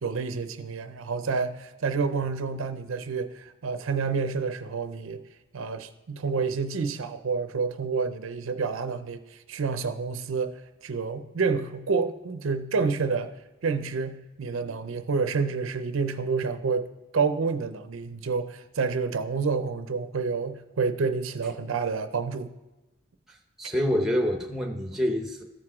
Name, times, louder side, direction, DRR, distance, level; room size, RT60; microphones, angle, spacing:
voice 1, 0.0-5.2 5.5-13.3 13.6-22.5, right 5 dB, 80° right, 10 dB, 0.5 m, -29 dB
voice 2, 23.3-25.4, equal, ahead, 3 dB, 0.8 m, -27 dB
14.0 x 4.8 x 3.6 m, 1.1 s
head